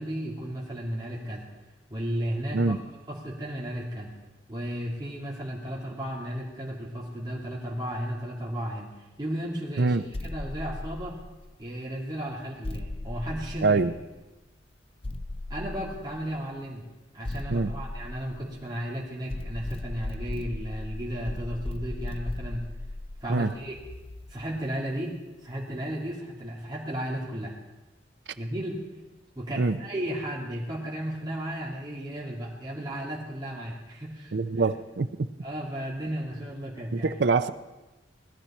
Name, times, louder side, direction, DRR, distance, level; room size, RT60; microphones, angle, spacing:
voice 1, 0.0-1.5 1.9-2.8 3.1-4.1 4.5-8.9 9.2-10.0 10.2-11.2 11.6-13.8 15.5-16.9 17.1-22.6 23.2-23.8 24.3-27.6 28.4-28.8 29.4-34.7 35.4-37.2, equal, 25° right, -5 dB, 2.7 m, -34 dB
sound 1, 10.1-11.6 12.6-14.2 15.0-16.4 17.2-18.8 19.3-24.6, left 2 dB, 30° left, 0.6 m, -37 dB
voice 2, 13.6-13.9 17.5-17.7 23.3-23.5 29.6-29.8 34.3-35.1 36.9-37.5, right 3 dB, 70° right, 13 dB, 0.6 m, -24 dB
19.5 x 13.0 x 4.4 m, 1.1 s
head